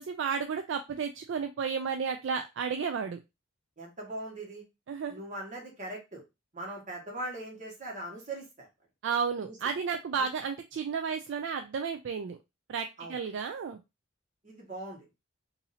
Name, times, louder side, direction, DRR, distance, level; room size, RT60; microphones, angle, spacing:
voice 1, 0.0-3.2 4.9-5.2 9.0-12.4 12.7-13.8, right 6 dB, 60° right, 6 dB, 0.3 m, -32 dB
voice 2, 3.8-4.6 5.1-6.2 6.5-8.7 9.4-9.6 10.2-10.3 13.0-13.2 14.4-15.1, right 1 dB, 35° right, -1 dB, 1.4 m, -40 dB
2.8 x 2.6 x 4.0 m, 0.24 s
head